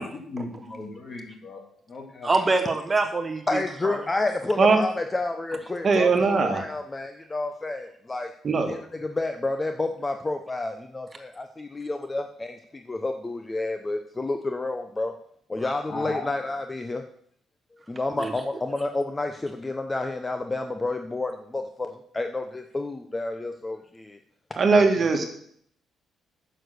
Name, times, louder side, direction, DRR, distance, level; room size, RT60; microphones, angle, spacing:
voice 1, 0.1-1.6 1.9-2.3 15.9-16.3, left 2 dB, 40° left, 2 dB, 2.5 m, -36 dB
voice 2, 2.2-4.0 15.6-15.7 18.2-18.3, right 3 dB, 25° right, 6 dB, 1.2 m, -26 dB
voice 3, 3.5-8.3 8.7-15.1 15.5-17.0 17.9-21.9 22.1-24.2, left 2 dB, 20° left, 6 dB, 0.7 m, -30 dB
voice 4, 5.8-6.6 8.4-8.7 24.6-25.3, right 4 dB, 45° right, 5 dB, 1.8 m, -20 dB
9.1 x 6.6 x 6.5 m, 0.65 s
cardioid pair, 90°, 0 cm